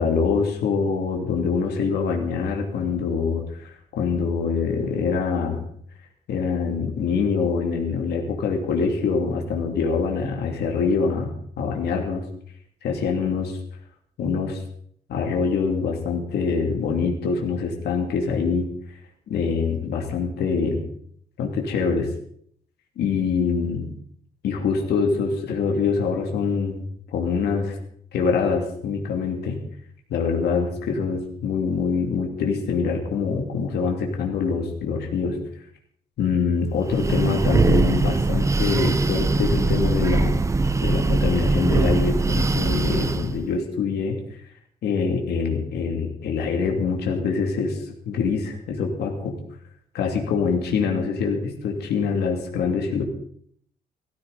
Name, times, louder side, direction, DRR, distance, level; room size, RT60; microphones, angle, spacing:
voice 1, 0.0-5.6 6.3-12.3 12.8-13.6 14.2-14.6 15.1-18.7 19.3-20.9 21.4-22.1 23.0-23.9 24.4-26.8 27.1-27.8 28.1-29.6 30.1-35.4 36.2-40.5 40.8-44.2 44.8-49.4 49.9-53.0, left 5 dB, 75° left, 1 dB, 2.6 m, -24 dB
Breathing, 36.8-43.4, right 3 dB, 15° right, 0.6 m, -21 dB
16.5 x 14.5 x 4.1 m, 0.64 s
cardioid pair, 140°, 17 cm